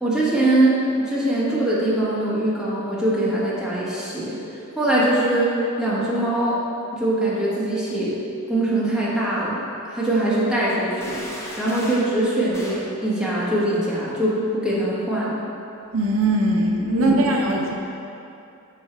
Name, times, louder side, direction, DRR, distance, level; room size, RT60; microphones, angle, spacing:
voice 1, 0.0-4.3 4.7-5.5 5.8-6.6 6.9-8.2 8.5-9.6 9.8-11.2 11.6-15.4 16.9-17.3, right 1 dB, 5° right, -9 dB, 1.6 m, -22 dB
sound 1, 11.0-12.2 12.5-12.9, left 1 dB, 10° left, 0.8 m, -36 dB
voice 2, 15.9-17.7, right 1 dB, 70° right, 0 dB, 0.6 m, -20 dB
6.2 x 5.9 x 4.6 m, 2.8 s
head